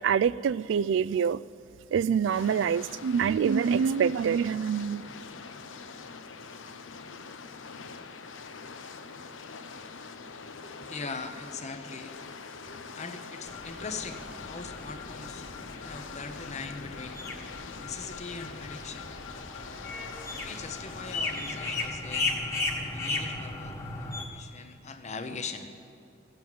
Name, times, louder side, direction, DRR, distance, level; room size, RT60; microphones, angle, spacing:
voice 1, 0.0-1.4 1.9-5.0, right 7 dB, 70° right, 19 dB, 0.3 m, -25 dB
sound 1, 2.3-21.9, left 5 dB, 85° left, 0.8 m, -44 dB
voice 2, 10.5-14.2 14.5-17.2 17.8-19.2 20.4-22.3 22.9-25.7, left 4 dB, 35° left, 8 dB, 0.9 m, -41 dB
sound 2, 13.5-24.3, left 3 dB, 15° left, 1.5 m, -36 dB
14.5 x 7.9 x 9.2 m, 2.4 s
head